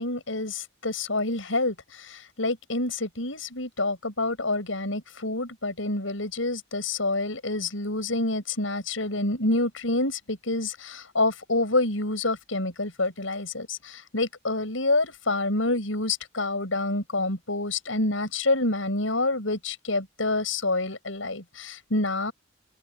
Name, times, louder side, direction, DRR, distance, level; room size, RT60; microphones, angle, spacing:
voice 1, 0.0-1.7 2.0-22.3, left 2 dB, 80° left, 6.7 m, -27 dB
open air
head